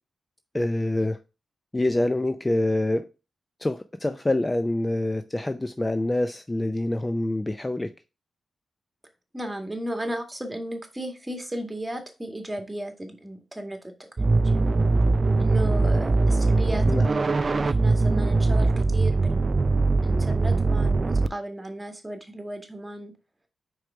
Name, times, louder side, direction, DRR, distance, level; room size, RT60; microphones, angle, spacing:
voice 1, 0.5-1.2 1.7-3.0 3.6-7.9 16.9-17.1, left 1 dB, 20° left, 9 dB, 0.5 m, -26 dB
voice 2, 9.3-13.8 14.2-14.6 15.4-19.6 20.0-23.1, right 1 dB, 15° right, 4 dB, 1.9 m, -35 dB
sound 1, 14.2-21.3, right 3 dB, 45° right, 0.4 m, -21 dB
4.8 x 4.7 x 5.0 m, 0.31 s
cardioid pair, 50°, 0 cm